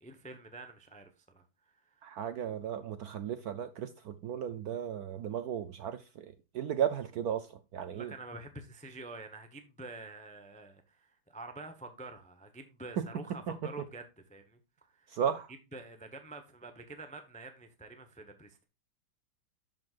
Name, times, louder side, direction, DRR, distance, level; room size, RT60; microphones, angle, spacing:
voice 1, 0.0-2.0 7.9-15.1 15.7-18.6, right 2 dB, 10° left, 0.4 m, -48 dB
voice 2, 2.0-8.1 13.0-13.1 13.5-13.6 15.1-15.5, right 9 dB, 70° right, 0.9 m, -35 dB
12.5 x 5.2 x 2.4 m
omnidirectional pair, 2.1 m